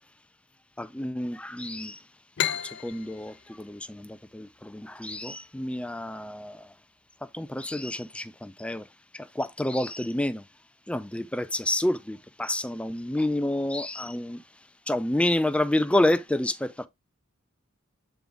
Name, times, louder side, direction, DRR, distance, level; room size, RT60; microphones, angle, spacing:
voice 1, 0.8-2.0 2.4-6.7 7.3-8.8 9.1-10.4 10.9-14.4 14.9-16.9, left 1 dB, 5° left, 0.4 m, -29 dB
sound 1, 2.4-5.8, left 10 dB, 55° left, 0.5 m, -34 dB
8.0 x 3.9 x 3.5 m
head